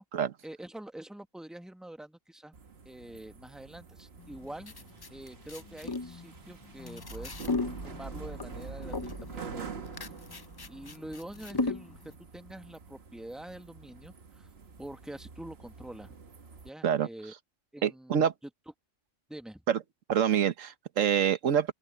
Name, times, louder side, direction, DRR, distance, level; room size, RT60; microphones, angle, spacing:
voice 1, 0.4-2.6 2.8-4.7 5.1-7.3 7.8-9.7 10.7-11.9 12.3-14.5 14.8-16.2 16.6-17.3 17.7-18.3 19.3-19.6, right 1 dB, ahead, 1.1 m, -45 dB
sound 1, 2.5-16.7, right 5 dB, 55° right, 1.5 m, -46 dB
sound 2, 4.2-12.1, left 3 dB, 35° left, 0.4 m, -37 dB
voice 2, 17.8-18.3 19.7-19.8 20.1-21.7, right 8 dB, 90° right, 1.4 m, -26 dB
open air
omnidirectional pair, 1.3 m